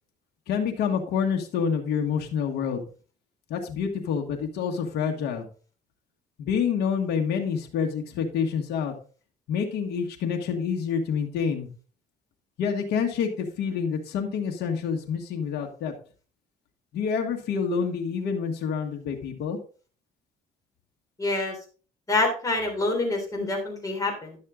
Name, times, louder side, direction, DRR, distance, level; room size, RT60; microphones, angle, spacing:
voice 1, 0.5-2.8 3.5-5.5 6.4-8.9 9.5-11.7 12.6-15.9 16.9-19.6, left 6 dB, 75° left, 2 dB, 1.6 m, -27 dB
voice 2, 21.2-21.5 22.1-24.4, left 2 dB, 20° left, 1 dB, 3.4 m, -26 dB
11.0 x 6.5 x 3.7 m, 0.39 s
cardioid pair, 110°, 17 cm